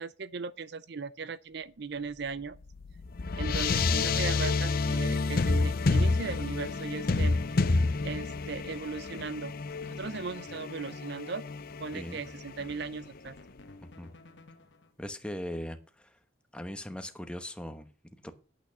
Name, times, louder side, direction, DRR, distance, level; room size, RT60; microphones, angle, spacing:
voice 1, 0.0-2.6 3.4-7.7 8.0-9.5 9.8-11.5 11.8-13.4, right 4 dB, 60° right, 0.5 m, -38 dB
sound 1, 2.3-13.0, left 3 dB, 50° left, 0.6 m, -29 dB
sound 2, 7.9-14.9, left 2 dB, 70° left, 1.2 m, -53 dB
voice 2, 13.8-14.1 15.0-16.2 16.5-18.3, equal, 5° left, 1.0 m, -40 dB
9.0 x 8.5 x 6.8 m
head